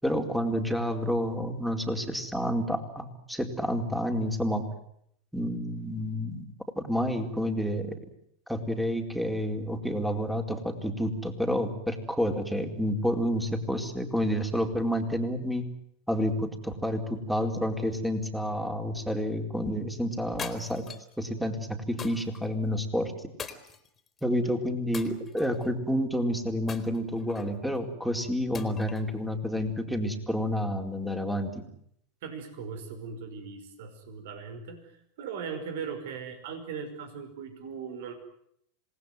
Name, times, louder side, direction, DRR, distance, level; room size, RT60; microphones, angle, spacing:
voice 1, 0.0-4.7 5.3-6.5 6.7-7.9 8.5-15.7 16.1-20.9 21.2-23.3 24.2-31.7, equal, ahead, 4 dB, 4.4 m, -29 dB
sound 1, 20.4-21.1 22.0-22.4 23.4-24.2 24.9-25.7 26.7-27.6 28.5-29.1, left 6 dB, 25° left, 3.7 m, -41 dB
voice 2, 32.2-34.8 35.2-38.1, right 6 dB, 65° right, 8 dB, 5.5 m, -39 dB
27.0 x 19.5 x 9.5 m, 0.72 s
hypercardioid pair, 90°, 0 cm